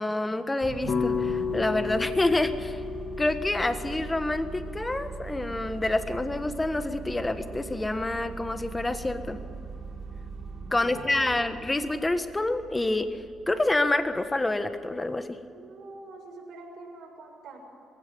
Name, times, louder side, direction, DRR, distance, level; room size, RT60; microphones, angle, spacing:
voice 1, 0.0-2.8 3.2-9.4 10.7-13.1 13.5-15.4, left 2 dB, 15° left, 9 dB, 1.4 m, -27 dB
sound 1, 0.6-15.1, right 4 dB, 40° right, 4.1 m, -41 dB
sound 2, 0.9-5.1, left 6 dB, 45° left, 1.7 m, -32 dB
voice 2, 10.7-11.6 15.5-17.6, right 3 dB, 65° right, 1 dB, 6.6 m, -45 dB
21.5 x 16.5 x 7.7 m, 2.5 s
cardioid pair, 90°, 0 cm